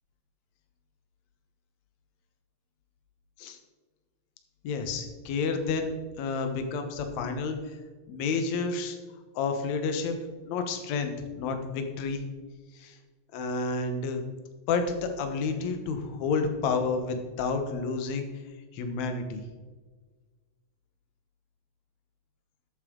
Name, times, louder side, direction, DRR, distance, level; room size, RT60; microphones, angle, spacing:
voice 1, 4.6-7.7 8.1-9.0 9.3-10.2 10.5-12.2 12.7-13.0 13.3-14.2 14.7-18.3 18.7-19.4, left 4 dB, 65° left, 6 dB, 2.2 m, -30 dB
12.5 x 8.2 x 3.8 m, 1.4 s
omnidirectional pair, 4.0 m